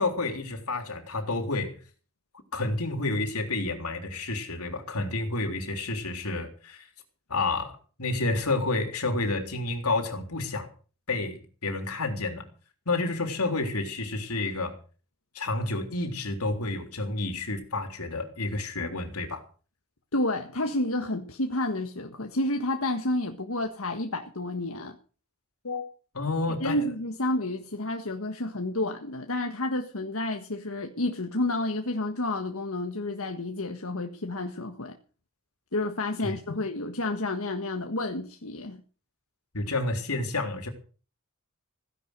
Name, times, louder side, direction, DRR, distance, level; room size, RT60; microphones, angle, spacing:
voice 1, 0.0-1.8 2.5-6.8 7.3-10.7 11.1-12.5 12.9-14.8 15.4-19.4 25.6-25.8 26.1-26.8 36.2-36.6 39.5-40.7, left 2 dB, 90° left, 3.6 m, -30 dB
voice 2, 20.1-25.0 26.6-35.0 35.7-38.8, left 2 dB, 70° left, 1.6 m, -30 dB
16.0 x 11.0 x 6.6 m
head